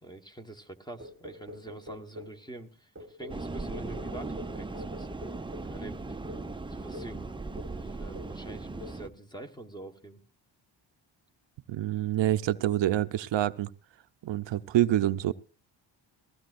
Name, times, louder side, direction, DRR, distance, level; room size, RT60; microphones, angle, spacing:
voice 1, 0.0-5.1 5.7-6.2 6.7-10.2, right 2 dB, 10° left, 1.2 m, -46 dB
sound 1, 1.0-2.4 3.0-5.8 6.3-6.5 6.9-7.2 7.6-7.9 8.2-8.5 8.8-9.1, left 2 dB, 30° right, 1.1 m, -46 dB
sound 2, 3.3-9.1, right 3 dB, 10° right, 0.6 m, -38 dB
voice 2, 11.7-13.7 14.2-15.3, right 13 dB, 70° right, 0.6 m, -26 dB
19.5 x 15.0 x 2.5 m
cardioid pair, 105°, 46 cm